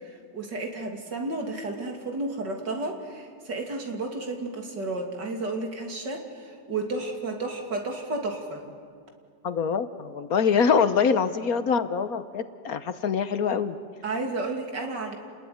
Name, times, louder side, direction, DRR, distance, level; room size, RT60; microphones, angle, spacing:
voice 1, 0.0-8.6 14.0-15.2, right 2 dB, 75° right, 3 dB, 3.5 m, -32 dB
voice 2, 9.4-13.8, left 6 dB, 60° left, 11 dB, 1.3 m, -24 dB
30.0 x 20.5 x 9.5 m, 2.1 s
omnidirectional pair, 1.9 m